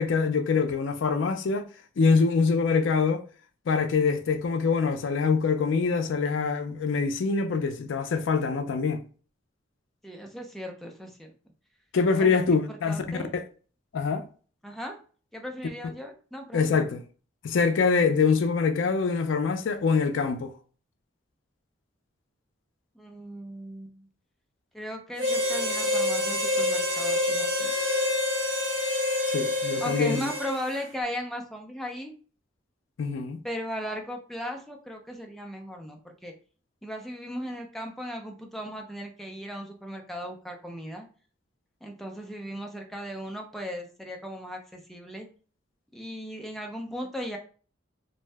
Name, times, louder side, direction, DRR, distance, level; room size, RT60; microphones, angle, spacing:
voice 1, 0.0-1.7 2.0-3.2 3.7-9.0 11.9-13.4 13.9-14.2 16.5-17.0 17.4-20.5 29.3-30.3 33.0-33.4, left 5 dB, 75° left, 0.4 m, -24 dB
voice 2, 10.0-11.3 12.2-13.3 14.6-15.0 15.3-16.9 22.9-24.1 24.7-27.7 29.8-32.1 33.4-36.3 36.8-41.1 41.8-45.3 45.9-47.4, equal, ahead, 0.4 m, -37 dB
Harmonica, 25.2-30.8, left 2 dB, 75° right, 1.1 m, -27 dB
2.6 x 2.1 x 3.3 m
head